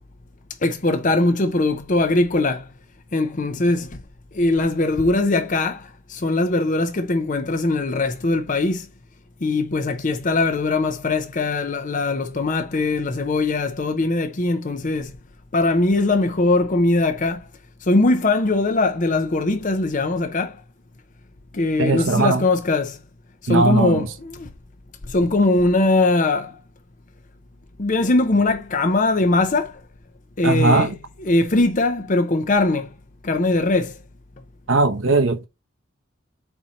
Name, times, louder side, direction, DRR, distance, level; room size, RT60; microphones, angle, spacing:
voice 1, 0.6-2.7 3.1-4.0 4.3-8.9 9.4-15.1 15.5-17.5 17.8-20.6 21.5-23.0 23.4-24.5 25.1-26.6 27.8-29.8 30.4-30.9 31.2-32.9 33.2-33.9, left 2 dB, 40° left, 0.7 m, -21 dB
voice 2, 21.8-22.5 23.5-24.1 30.4-30.9 34.7-35.5, right 3 dB, 75° right, 0.8 m, -19 dB
4.4 x 4.3 x 5.2 m
head